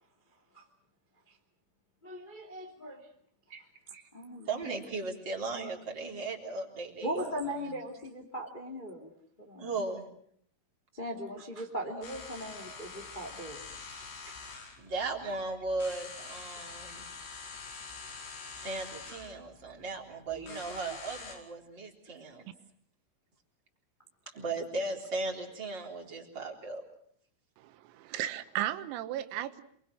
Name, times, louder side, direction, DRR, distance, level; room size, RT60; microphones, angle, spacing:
voice 1, 2.0-3.1 4.1-4.7 7.0-9.1 9.4-9.8 10.9-13.6 14.2-14.4 20.3-20.6, equal, 20° left, 3 dB, 1.4 m, -39 dB
voice 2, 4.5-7.1 7.6-7.7 9.6-10.0 14.8-17.1 18.6-22.4 24.3-26.8, right 3 dB, 25° right, 0 dB, 3.7 m, -37 dB
sound 1, 12.0-21.4, left 4 dB, 90° left, 7.9 m, -46 dB
voice 3, 27.6-29.6, right 13 dB, 85° right, 11 dB, 3.9 m, -35 dB
28.0 x 24.0 x 6.3 m, 0.67 s
omnidirectional pair, 6.0 m